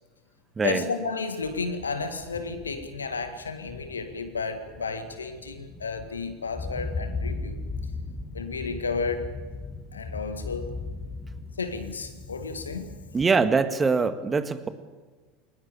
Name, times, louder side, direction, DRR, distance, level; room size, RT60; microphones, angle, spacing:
voice 1, 0.6-7.6 8.3-9.3 9.9-10.7 11.6-12.9, left 4 dB, 90° left, 9 dB, 2.0 m, -32 dB
sound 1, 1.5-13.3, left 3 dB, 15° left, 3.7 m, -38 dB
voice 2, 13.1-14.7, right 4 dB, 20° right, 10 dB, 1.8 m, -23 dB
21.5 x 20.0 x 8.8 m, 1.3 s
hypercardioid pair, 75°, 0 cm